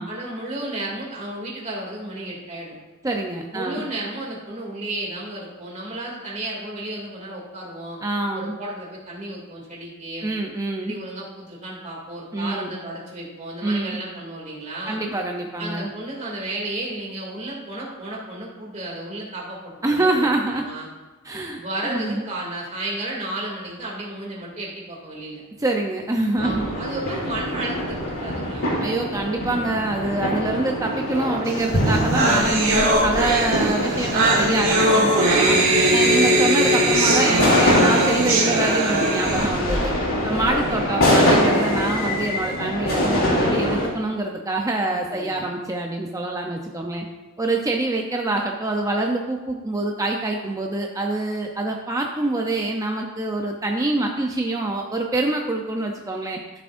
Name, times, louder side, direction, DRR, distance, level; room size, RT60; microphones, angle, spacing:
voice 1, 0.1-2.7 3.5-8.0 8.4-10.3 10.8-15.0 15.6-20.9 21.6-25.4 26.4-28.9 44.9-45.5, right 1 dB, 35° right, -3 dB, 2.5 m, -33 dB
voice 2, 3.0-3.8 8.0-8.6 10.2-11.0 12.3-12.8 13.6-14.0 14.9-15.9 19.8-20.7 21.2-22.2 25.6-26.7 28.8-35.6 35.9-39.9 40.2-47.0 47.4-56.4, right 2 dB, 15° right, 1 dB, 0.6 m, -25 dB
sound 1, 26.4-43.9, equal, 85° left, 2.9 m, -24 dB
sound 2, 31.6-31.7 31.8-39.4, right 1 dB, 70° right, 2.2 m, -20 dB
13.0 x 7.1 x 2.6 m, 1.2 s
head